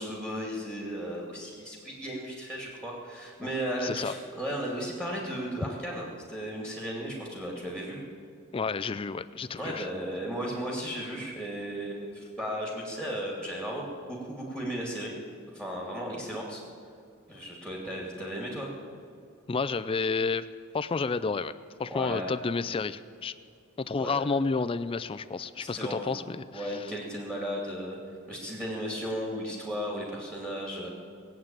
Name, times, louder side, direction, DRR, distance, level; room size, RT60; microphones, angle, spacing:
voice 1, 0.0-8.0 9.6-15.1 15.5-16.6 17.3-18.7 21.8-22.3 23.9-24.2 25.6-26.3 26.5-28.0 28.3-30.9, equal, 10° right, -2 dB, 2.4 m, -35 dB
voice 2, 3.8-4.2 8.5-9.9 19.5-20.5 20.7-23.3 23.8-26.9, left 4 dB, 25° left, 13 dB, 0.3 m, -31 dB
19.5 x 8.1 x 8.9 m, 2.2 s
head